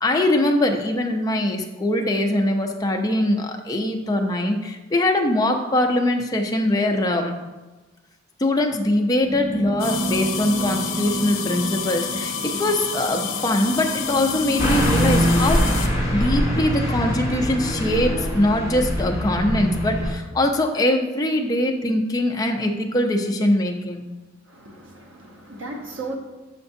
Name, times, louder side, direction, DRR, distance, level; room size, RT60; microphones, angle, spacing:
voice 1, 0.0-7.4 8.4-15.6 16.1-24.1, left 1 dB, 20° left, 2 dB, 0.5 m, -22 dB
sound 1, 9.2-18.2, right 2 dB, 50° right, 0.9 m, -32 dB
sound 2, 9.8-15.9, left 7 dB, 80° left, 0.6 m, -29 dB
Car passing by / Truck, 14.6-20.1, equal, 15° right, 1.0 m, -23 dB
voice 2, 24.5-26.2, right 2 dB, 75° right, 1 dB, 1.0 m, -35 dB
6.8 x 5.9 x 2.6 m, 1.2 s
head